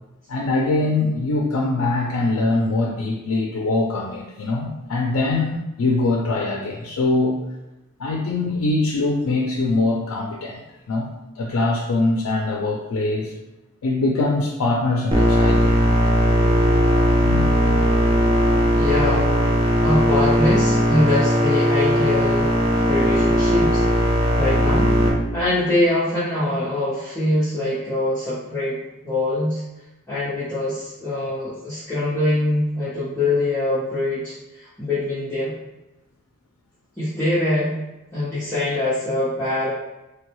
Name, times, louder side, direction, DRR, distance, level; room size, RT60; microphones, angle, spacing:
voice 1, 0.3-7.4 8.0-10.6 10.9-11.1 11.4-13.3 13.8-15.8 17.2-17.8 18.2-18.9 19.1-19.2, left 2 dB, 85° left, -1 dB, 0.4 m, -23 dB
sound 1, 15.1-25.1, equal, 25° right, 0.4 m, -18 dB
voice 2, 18.7-19.3 19.8-22.5 22.9-24.9 25.3-29.6 30.1-35.5 37.0-37.8 38.1-39.7, left 1 dB, 10° left, -14 dB, 0.8 m, -23 dB
3.3 x 2.2 x 3.0 m, 0.99 s
head